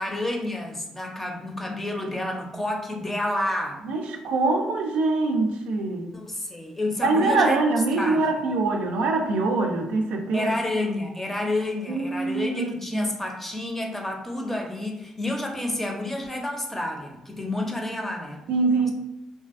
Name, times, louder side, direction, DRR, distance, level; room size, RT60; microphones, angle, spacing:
voice 1, 0.0-3.8 6.1-7.6 7.9-8.2 10.3-18.5, left 1 dB, 10° left, 1 dB, 0.5 m, -29 dB
voice 2, 3.8-6.1 7.0-10.5 11.9-13.1 18.5-18.9, right 3 dB, 85° right, 3 dB, 0.4 m, -24 dB
2.6 x 2.3 x 2.4 m, 0.91 s
cardioid pair, 85°, 2 cm